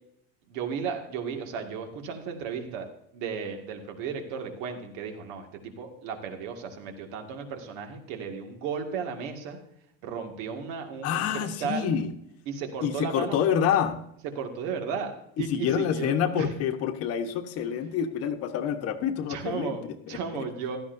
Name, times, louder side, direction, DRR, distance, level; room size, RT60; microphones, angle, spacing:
voice 1, 0.5-2.9 3.1-9.6 10.0-11.9 12.5-13.4 14.4-16.5 19.3-19.8 20.1-20.8, right 6 dB, 75° right, 4 dB, 2.1 m, -34 dB
voice 2, 11.0-12.1 12.8-14.0 15.4-19.9, left 8 dB, 50° left, 7 dB, 1.2 m, -27 dB
15.5 x 12.5 x 2.7 m, 0.75 s
cardioid pair, 160°, 31 cm